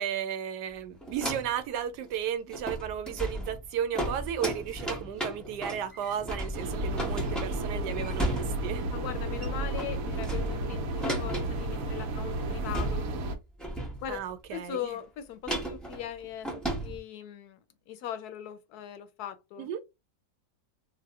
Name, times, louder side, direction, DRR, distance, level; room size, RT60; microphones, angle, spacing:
voice 1, 0.0-8.9 14.1-15.0 19.6-19.8, right 9 dB, 85° right, 1.2 m, -34 dB
sound 1, 1.0-1.6 2.0-2.1 2.5-8.8 9.2-9.5 9.8-12.0 12.3-12.4 12.7-13.3 13.6-14.3 15.5-17.0, right 1 dB, ahead, 0.4 m, -35 dB
sound 2, 6.5-13.4, right 2 dB, 65° right, 0.9 m, -32 dB
voice 2, 8.9-13.1 14.0-14.2 14.5-16.5 16.8-19.7, left 10 dB, 75° left, 1.0 m, -39 dB
2.7 x 2.1 x 3.4 m
omnidirectional pair, 1.8 m